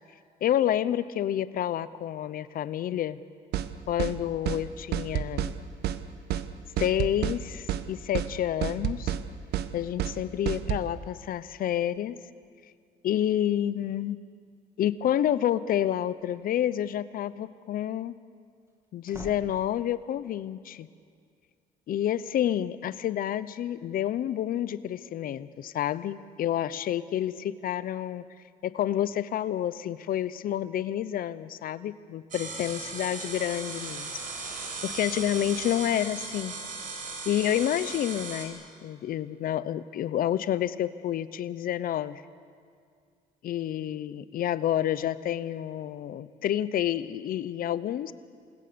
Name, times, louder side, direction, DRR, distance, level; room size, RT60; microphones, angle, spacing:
voice 1, 0.4-3.2 3.9-5.5 6.8-9.1 9.7-12.2 13.0-14.2 14.8-18.2 18.9-20.9 21.9-28.2 28.6-34.2 34.8-36.5 37.3-42.2 43.4-48.1, left 11 dB, 60° left, 16 dB, 0.8 m, -29 dB
sound 1, 3.5-3.7 4.0-4.2 4.5-4.6 4.9-5.5 5.8-6.0 6.3-6.5 6.8-7.4 7.7-7.8 8.1-8.3 8.6-9.2 9.5-9.7 10.0-10.2 10.5-10.8, right 11 dB, 75° right, 1.1 m, -29 dB
sound 2, 16.1-16.4 18.6-20.2, right 2 dB, 15° right, 2.4 m, -47 dB
sound 3, 32.3-38.5, right 4 dB, 55° right, 4.6 m, -37 dB
28.5 x 21.0 x 6.9 m, 2.2 s
cardioid pair, 110°, 17 cm